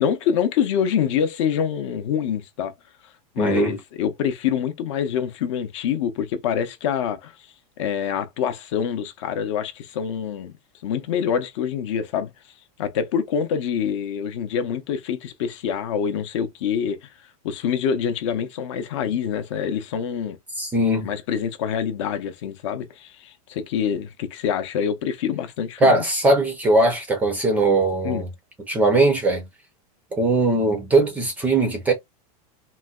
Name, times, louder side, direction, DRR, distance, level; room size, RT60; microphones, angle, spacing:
voice 1, 0.0-2.8 3.4-7.3 7.8-10.5 10.8-12.3 12.8-17.0 17.4-20.4 21.0-26.0 28.0-28.2, left 8 dB, 50° left, 0.6 m, -25 dB
voice 2, 3.4-3.7 20.6-21.1 25.8-28.3 28.7-29.5 30.1-31.9, right 2 dB, 10° right, 0.5 m, -20 dB
3.8 x 2.1 x 2.3 m
supercardioid pair, 180°, 20 cm